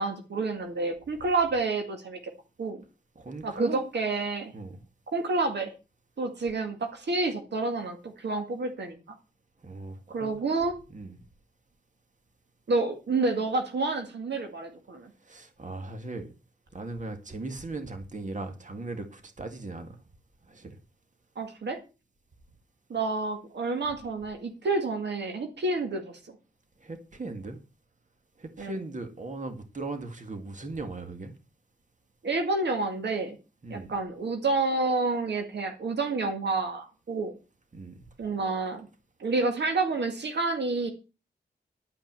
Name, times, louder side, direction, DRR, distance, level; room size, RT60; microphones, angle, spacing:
voice 1, 0.0-2.2 2.6-2.8 3.4-4.5 5.1-5.7 6.2-9.2 10.1-10.7 12.7-15.1 21.4-21.8 22.9-26.2 28.6-28.8 32.2-33.4 33.7-37.3 38.2-38.9 39.2-40.9, right 3 dB, 80° right, 2.0 m, -29 dB
voice 2, 3.2-3.8 4.5-4.8 9.6-10.3 10.9-11.2 15.2-16.3 16.7-20.0 20.5-20.8 26.8-27.6 28.4-31.3 33.6-33.9 37.7-38.0, right 3 dB, 45° right, 2.0 m, -38 dB
11.5 x 5.5 x 7.5 m
cardioid pair, 65°, 18 cm